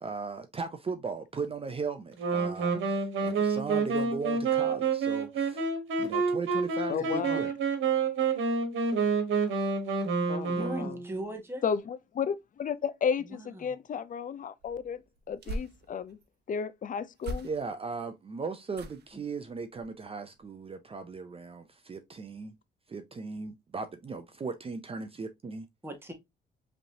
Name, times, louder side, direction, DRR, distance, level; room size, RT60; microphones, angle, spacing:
voice 1, 0.0-5.7 6.0-7.5 17.4-22.5 22.9-25.7, right 4 dB, 30° right, 0.6 m, -37 dB
Wind instrument woodwind instrument, 2.2-11.2, right 4 dB, 75° right, 1.4 m, -28 dB
voice 2, 6.9-7.5 10.3-11.0 11.6-16.2 16.5-17.5, left 7 dB, 40° left, 0.5 m, -33 dB
voice 3, 10.5-11.6 13.3-13.7 19.1-19.2 25.8-26.1, right 1 dB, 10° right, 1.6 m, -39 dB
sound 1, 14.6-16.3 17.2-17.9 18.7-19.2 19.7-20.0 20.4-20.5, right 1 dB, 55° right, 0.9 m, -41 dB
5.0 x 3.3 x 2.8 m
cardioid pair, 90°, 20 cm